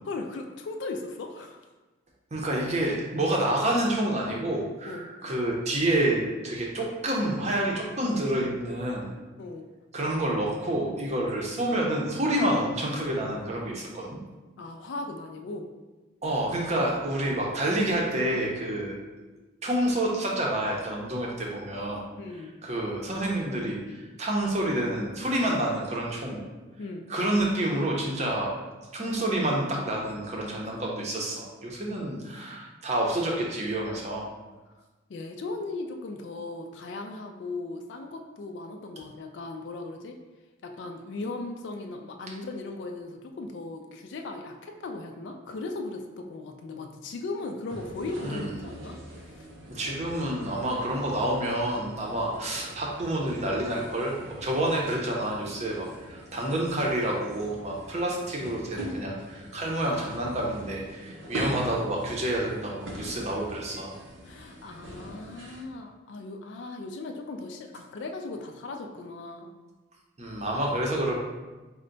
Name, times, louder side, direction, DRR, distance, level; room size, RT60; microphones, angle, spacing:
voice 1, 0.0-1.6 4.9-5.1 9.4-9.7 14.6-15.7 22.2-22.5 26.8-27.1 35.1-40.2 40.6-49.0 49.3-49.5 64.2-69.5, left 3 dB, 65° left, 4 dB, 0.3 m, -37 dB
voice 2, 2.3-9.1 9.9-14.2 16.2-19.2 19.6-22.0 22.6-26.4 27.1-28.5 28.9-34.3 48.2-48.5 49.7-63.9 70.2-71.2, right 1 dB, 35° right, -2 dB, 0.6 m, -28 dB
sound 1, 47.7-65.6, right 1 dB, 75° right, 0.6 m, -42 dB
4.4 x 2.1 x 3.8 m, 1.2 s
head